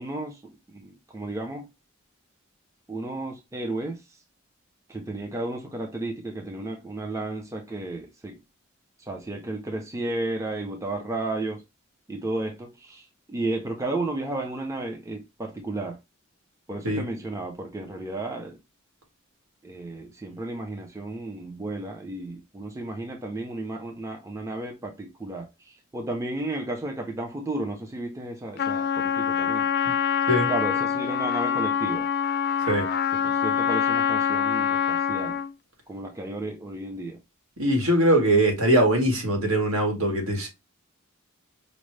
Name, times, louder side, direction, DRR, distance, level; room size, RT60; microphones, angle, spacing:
voice 1, 0.0-1.7 2.9-4.0 4.9-8.4 9.1-11.6 12.1-13.0 13.3-16.0 16.7-18.6 19.6-25.5 25.9-29.7 30.5-32.1 33.1-35.4 35.9-37.2, right 2 dB, 15° right, 0.5 m, -33 dB
Trumpet, 28.6-35.5, left 7 dB, 50° left, 0.4 m, -25 dB
voice 2, 37.6-40.5, right 1 dB, 75° right, 1.4 m, -22 dB
5.1 x 2.0 x 3.1 m
head